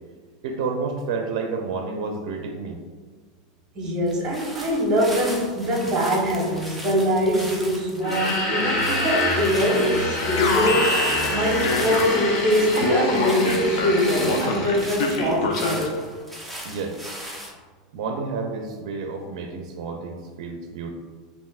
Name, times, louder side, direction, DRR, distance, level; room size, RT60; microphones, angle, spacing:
voice 1, 0.4-2.8 16.6-17.0 17.9-20.9, right 4 dB, 70° right, 3 dB, 0.5 m, -30 dB
voice 2, 3.7-11.0 11.3-16.0, equal, 25° right, -3 dB, 1.2 m, -23 dB
sound 1, 4.1-17.5, equal, 5° left, 0.6 m, -38 dB
sound 2, 8.0-15.2, left 1 dB, 45° left, 1.0 m, -27 dB
Alarm, 10.4-12.4 12.8-16.0, left 3 dB, 70° left, 0.6 m, -26 dB
5.3 x 2.9 x 2.4 m, 1.5 s
supercardioid pair, 145°, 3 cm